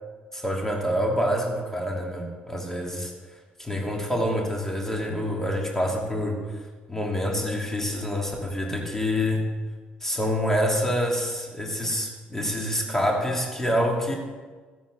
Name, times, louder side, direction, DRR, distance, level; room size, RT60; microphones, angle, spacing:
voice 1, 0.3-3.1 3.6-6.4 6.9-9.4 10.0-14.2, equal, 10° left, 0 dB, 2.9 m, -26 dB
14.5 x 10.0 x 3.9 m, 1.4 s
figure-of-eight pair, 45°, 5 cm